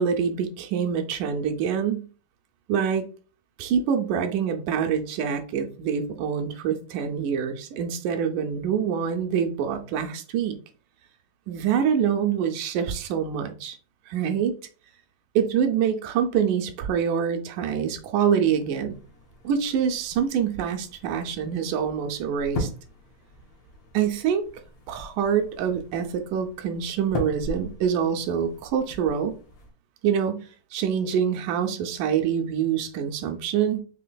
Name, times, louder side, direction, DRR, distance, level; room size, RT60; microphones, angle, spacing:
voice 1, 0.0-2.0 2.7-3.0 3.6-10.6 11.5-13.8 14.1-14.5 15.4-19.0 19.4-22.7 23.9-24.5 24.9-29.3 30.0-30.5 30.7-33.8, right 7 dB, 80° right, 5 dB, 2.0 m, -25 dB
sound 1, 18.9-29.7, left 2 dB, 65° left, 1.6 m, -39 dB
5.6 x 3.3 x 2.2 m, 0.37 s
omnidirectional pair, 3.6 m